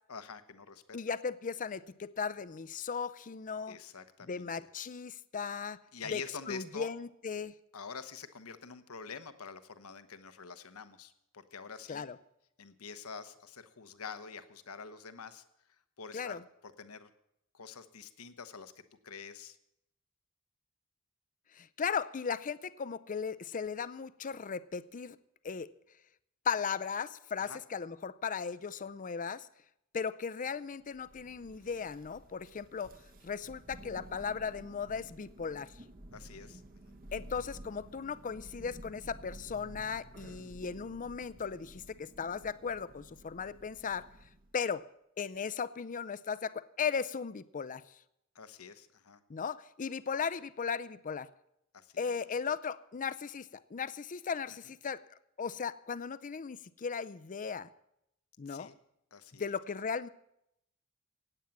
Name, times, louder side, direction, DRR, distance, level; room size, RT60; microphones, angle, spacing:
voice 1, 0.1-1.0 3.7-4.7 5.9-6.9 7.7-12.0 12.6-15.4 16.0-17.1 17.5-19.6 27.4-27.6 36.1-37.0 48.3-49.2 51.7-52.1 58.5-58.8 59.1-59.5, left 5 dB, 80° left, 11 dB, 1.0 m, -47 dB
voice 2, 0.9-3.8 4.2-5.8 6.1-6.2 6.5-7.5 11.9-12.2 16.1-16.4 21.5-25.2 25.4-25.7 26.5-29.5 29.9-32.9 33.2-35.7 37.1-44.1 44.5-44.8 45.2-47.8 49.3-51.3 52.0-55.0 55.4-57.7 58.4-58.7 59.4-60.1, left 6 dB, 40° left, 16 dB, 0.5 m, -37 dB
Thunder, 30.9-44.5, right 1 dB, 40° right, 1.2 m, -52 dB
16.5 x 9.1 x 7.2 m, 0.80 s
head